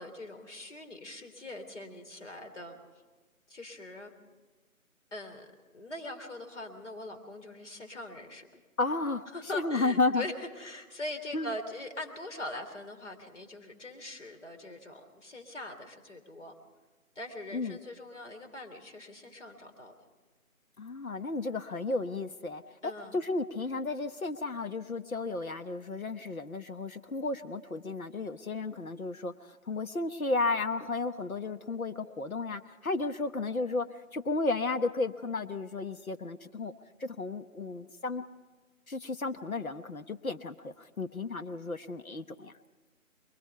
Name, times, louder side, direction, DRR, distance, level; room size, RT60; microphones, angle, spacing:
voice 1, 0.0-2.8 3.5-4.1 5.1-5.5 5.7-8.5 9.3-16.5 17.1-19.9 22.8-23.2, left 1 dB, 55° left, 5 dB, 3.3 m, -42 dB
voice 2, 8.8-9.3 9.5-10.2 11.3-11.5 17.5-17.8 20.8-33.9 34.1-36.7 37.0-38.2 38.9-42.5, left 3 dB, 75° left, 9 dB, 1.2 m, -33 dB
23.0 x 20.0 x 5.7 m, 1.3 s
figure-of-eight pair, 160°, 43 cm